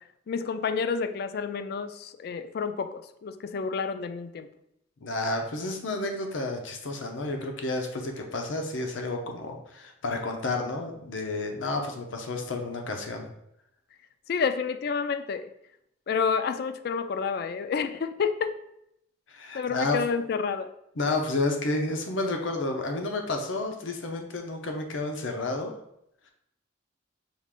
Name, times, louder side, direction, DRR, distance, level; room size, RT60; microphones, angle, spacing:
voice 1, 0.3-4.5 14.3-15.5 16.1-18.5 19.5-20.7, left 5 dB, 55° left, 10 dB, 0.3 m, -29 dB
voice 2, 5.0-13.3 19.3-20.0 21.0-25.7, left 2 dB, 90° left, 3 dB, 0.7 m, -31 dB
6.2 x 2.4 x 3.5 m, 0.78 s
head